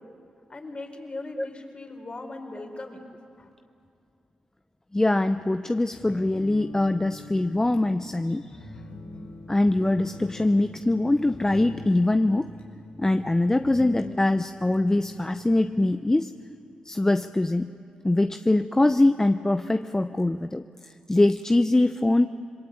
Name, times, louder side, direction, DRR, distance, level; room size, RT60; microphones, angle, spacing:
voice 1, 0.5-3.0 3.4-3.5, left 2 dB, 40° left, 2 dB, 4.8 m, -39 dB
voice 2, 4.9-8.5 9.5-12.5 13.0-16.3 16.9-17.7 18.0-20.6 21.1-22.3, left 2 dB, 20° left, 9 dB, 0.7 m, -23 dB
sound 1, 5.9-15.8, left 1 dB, 80° left, 4.3 m, -43 dB
26.5 x 21.5 x 8.8 m, 2.5 s
supercardioid pair, 45°, 3 cm